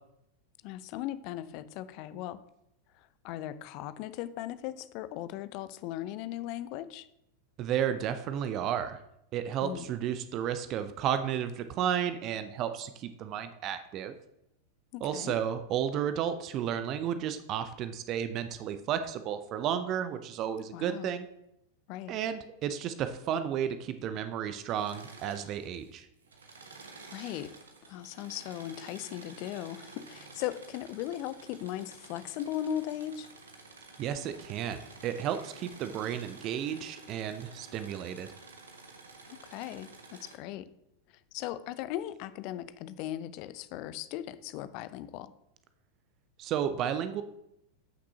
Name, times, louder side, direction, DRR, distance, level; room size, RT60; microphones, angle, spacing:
voice 1, 0.6-2.4 3.0-7.1 9.6-9.8 14.9-15.3 20.7-21.1 21.9-22.2 27.1-27.5 27.9-33.3 39.3-40.7 41.3-45.3, left 12 dB, 45° left, 15 dB, 0.5 m, -38 dB
voice 2, 7.6-9.0 9.3-14.1 15.0-21.3 22.1-26.1 34.0-38.3 46.4-47.2, right 9 dB, 35° right, 10 dB, 0.6 m, -32 dB
Engine / Mechanisms, 24.6-25.9 26.2-40.4, right 3 dB, 70° right, 1.1 m, -51 dB
14.0 x 6.0 x 2.8 m, 0.80 s
figure-of-eight pair, 90°, 0 cm